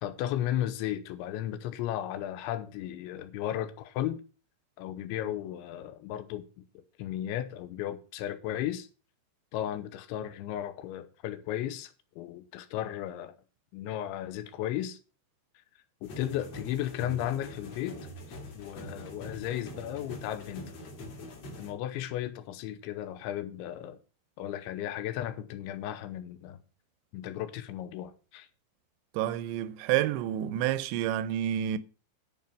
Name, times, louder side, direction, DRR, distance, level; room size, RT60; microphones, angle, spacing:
voice 1, 0.0-4.2 4.8-6.6 7.0-8.9 9.5-13.4 13.7-15.0 16.0-18.0 18.3-20.7 21.6-24.0 24.4-26.6 27.1-28.5, left 12 dB, 85° left, 3.2 m, -35 dB
sound 1, 16.0-21.7, left 1 dB, 45° left, 2.4 m, -44 dB
voice 2, 29.1-31.8, right 12 dB, 80° right, 2.7 m, -29 dB
11.0 x 5.1 x 6.8 m
omnidirectional pair, 5.4 m